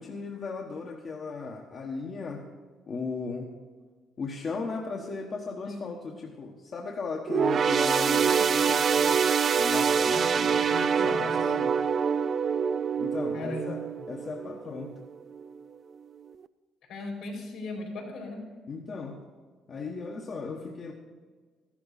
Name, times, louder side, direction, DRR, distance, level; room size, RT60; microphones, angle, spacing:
voice 1, 0.0-2.5 2.9-3.5 4.2-9.2 9.6-11.7 13.0-15.0 18.7-19.2 19.7-20.9, left 4 dB, 50° left, 0 dB, 1.3 m, -37 dB
voice 2, 5.6-6.0 10.1-11.4 13.3-13.7 16.9-18.5, left 2 dB, 75° left, 0 dB, 4.2 m, -38 dB
sound 1, 7.3-15.0 15.4-15.6 16.4-16.5, right 6 dB, 50° right, 0.4 m, -25 dB
13.5 x 12.0 x 4.2 m, 1.5 s
supercardioid pair, 80°, 0 cm